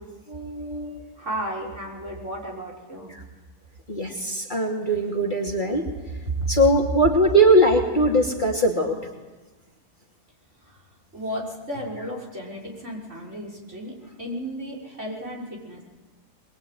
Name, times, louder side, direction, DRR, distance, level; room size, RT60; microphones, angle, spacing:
voice 1, 0.3-1.0 3.1-3.2 3.9-5.9 6.5-9.0, right 1 dB, 30° left, 0 dB, 2.8 m, -21 dB
voice 2, 1.2-3.1 6.2-6.5 10.6-10.9 11.1-15.8, right 1 dB, 45° right, -2 dB, 6.6 m, -33 dB
23.0 x 22.5 x 9.5 m, 1.2 s
omnidirectional pair, 1.8 m